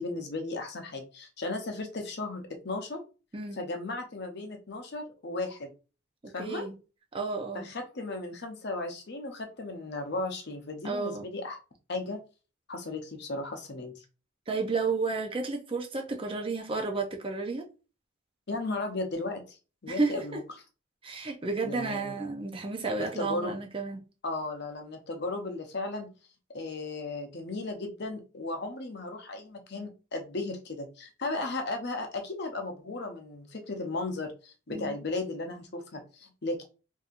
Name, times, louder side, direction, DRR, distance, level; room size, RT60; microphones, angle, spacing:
voice 1, 0.0-3.0 3.5-5.7 6.3-6.6 7.5-11.6 11.9-12.2 12.7-13.9 18.5-19.6 19.8-20.4 21.6-22.1 23.0-23.5 24.2-26.1 26.5-36.6, left 2 dB, 55° left, 0.7 m, -35 dB
voice 2, 6.4-6.7 7.1-7.7 10.8-11.3 14.5-17.7 19.9-20.4 21.0-24.0 34.7-35.0, right 3 dB, 25° right, 0.5 m, -32 dB
4.1 x 2.7 x 2.5 m
head